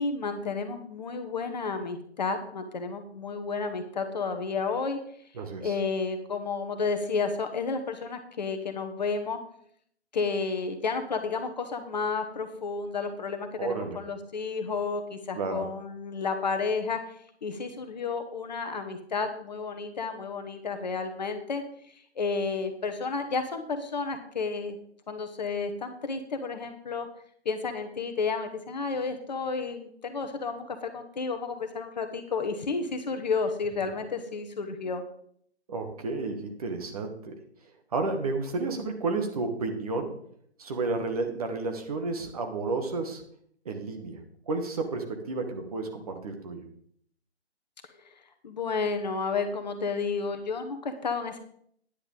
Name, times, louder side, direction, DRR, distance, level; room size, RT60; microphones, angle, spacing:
voice 1, 0.0-5.0 5.6-9.4 10.1-17.0 17.4-24.8 25.1-27.1 27.4-35.0 48.0-48.1 48.4-51.4, left 4 dB, 40° left, 7 dB, 1.1 m, -31 dB
voice 2, 5.4-5.7 13.6-14.0 15.3-15.7 35.7-37.3 37.9-40.2 40.6-43.2 43.6-44.2 44.5-46.6, right 3 dB, 35° right, 5 dB, 1.4 m, -31 dB
10.0 x 9.3 x 3.8 m, 0.66 s
figure-of-eight pair, 145°, 34 cm